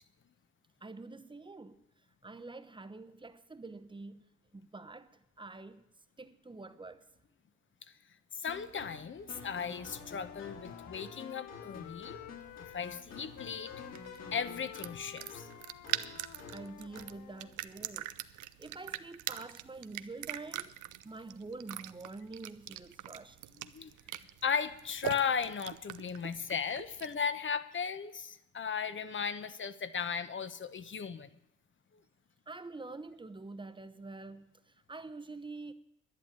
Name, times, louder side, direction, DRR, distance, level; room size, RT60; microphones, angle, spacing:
voice 1, 0.8-1.8 2.2-4.2 4.5-5.8 6.2-7.1 16.5-18.2 18.6-23.4 32.5-35.7, right 3 dB, 15° right, 0.9 m, -46 dB
voice 2, 8.4-12.2 12.7-13.7 14.3-15.5 23.7-23.9 24.4-31.3, left 6 dB, 40° left, 1.0 m, -36 dB
sound 1, 8.5-17.2, left 4 dB, 60° left, 3.5 m, -50 dB
Wind instrument woodwind instrument, 9.5-13.1 13.4-17.6, left 13 dB, 90° left, 0.7 m, -51 dB
sound 2, 12.4-27.3, right 14 dB, 80° right, 0.7 m, -43 dB
11.0 x 10.5 x 8.8 m
cardioid pair, 90°, 30 cm